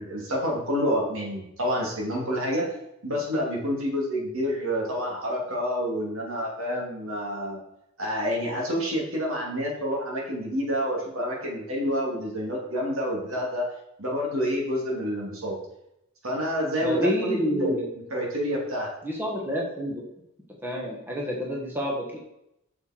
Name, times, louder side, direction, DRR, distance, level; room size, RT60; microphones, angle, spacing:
voice 1, 0.0-2.7 3.0-7.6 8.0-13.7 14.0-15.6 16.2-17.8 18.1-18.9, equal, 65° right, -2 dB, 3.0 m, -28 dB
voice 2, 16.8-17.8 19.0-20.0 20.6-22.2, left 1 dB, 10° right, -2 dB, 1.4 m, -29 dB
8.0 x 6.6 x 4.6 m, 0.81 s
head